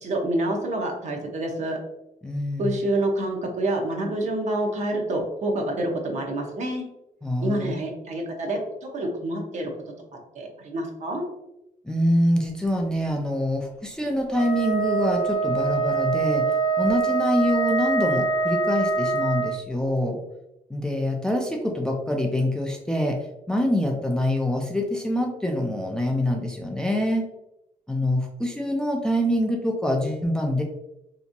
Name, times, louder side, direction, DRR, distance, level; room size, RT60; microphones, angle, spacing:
voice 1, 0.0-1.8 2.6-6.8 7.4-8.6 8.9-9.7 10.4-11.2, right 1 dB, 55° right, 2 dB, 0.6 m, -27 dB
voice 2, 2.2-2.7 7.2-7.7 11.9-20.2 20.7-27.3 27.9-30.6, left 1 dB, 5° left, 1 dB, 0.3 m, -25 dB
Wind instrument woodwind instrument, 14.3-19.6, right 4 dB, 75° left, 0.4 m, -24 dB
2.9 x 2.5 x 2.5 m, 0.86 s
cardioid pair, 140°, 14 cm